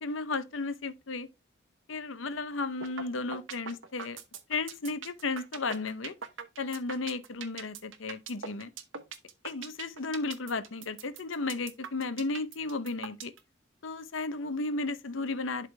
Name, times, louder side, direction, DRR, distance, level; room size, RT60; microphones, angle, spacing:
voice 1, 0.0-1.3 1.9-4.2 4.5-6.1 6.6-8.7 9.4-13.3 13.8-15.7, left 3 dB, 70° left, 0.8 m, -34 dB
sound 1, 2.8-3.0 3.3-13.4, right 6 dB, 70° right, 1.0 m, -41 dB
11.0 x 3.8 x 3.3 m
head